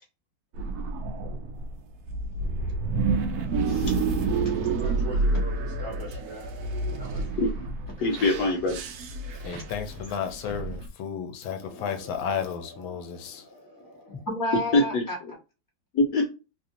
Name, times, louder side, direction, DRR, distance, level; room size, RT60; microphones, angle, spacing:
sound 1, 0.5-10.9, right 3 dB, 80° right, 0.8 m, -29 dB
voice 1, 4.7-6.6 7.0-7.5, right 3 dB, 40° right, 1.3 m, -41 dB
voice 2, 6.7-7.5 9.5-9.7 9.9-10.0 11.6-12.4 12.7-15.2, left 1 dB, 15° left, 0.8 m, -36 dB
voice 3, 8.0-8.8 14.7-15.0 15.9-16.3, left 2 dB, 70° left, 1.1 m, -23 dB
voice 4, 9.4-13.5, left 7 dB, 90° left, 1.4 m, -33 dB
3.3 x 2.5 x 2.6 m
omnidirectional pair, 2.1 m